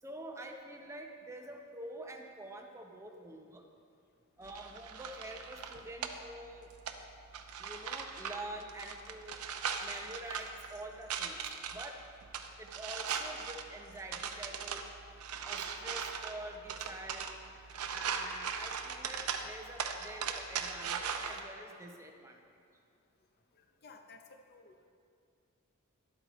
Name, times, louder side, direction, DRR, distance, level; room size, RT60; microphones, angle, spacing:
voice 1, 0.0-3.6 4.4-6.7 7.6-9.4 9.8-11.4 11.7-12.0 12.6-14.9 15.4-17.4 17.9-22.4, right 1 dB, 15° right, 2 dB, 0.6 m, -47 dB
sound 1, 4.4-21.4, right 6 dB, 80° right, 0.6 m, -40 dB
voice 2, 23.6-24.9, left 3 dB, 45° left, 6 dB, 0.6 m, -57 dB
11.5 x 8.1 x 3.0 m, 2.4 s
head